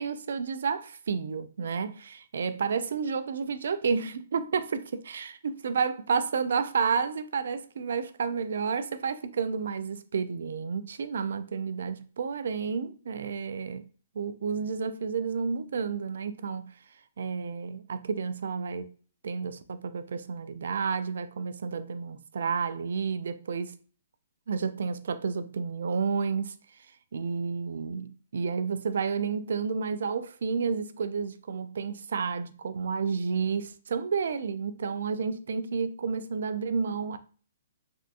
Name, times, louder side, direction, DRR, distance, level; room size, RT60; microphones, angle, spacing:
voice 1, 0.0-13.8 14.2-16.7 17.2-18.9 19.2-23.7 24.5-26.5 27.1-37.2, right 5 dB, 75° right, 0.3 m, -31 dB
3.4 x 2.4 x 2.6 m
hypercardioid pair, 140°, 0 cm